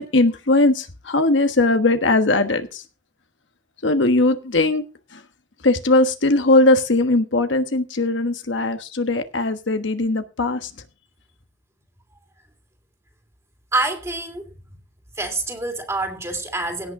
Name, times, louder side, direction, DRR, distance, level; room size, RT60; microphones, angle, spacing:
voice 1, 0.0-2.8 3.8-4.8 5.1-5.2 5.6-10.7, left 2 dB, 75° left, 1.3 m, -19 dB
voice 2, 13.7-14.5 15.2-16.9, right 2 dB, 15° right, 2.6 m, -26 dB
17.0 x 6.4 x 4.8 m
head